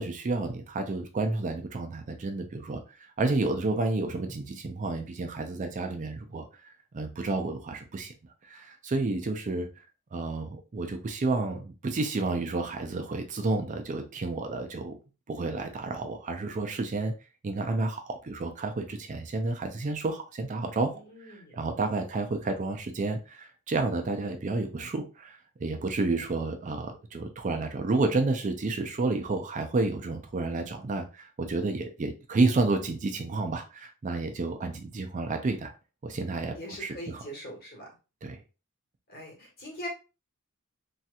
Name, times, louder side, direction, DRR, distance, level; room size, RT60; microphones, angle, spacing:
voice 1, 0.0-6.5 6.9-8.1 8.4-9.7 10.1-15.0 15.3-17.1 17.4-20.9 21.2-35.7 36.0-37.2 38.2-38.4, right 3 dB, 35° right, 0.4 m, -30 dB
voice 2, 20.9-21.6 36.6-37.8 39.1-39.9, equal, 45° left, 1.3 m, -42 dB
3.1 x 2.8 x 2.3 m
head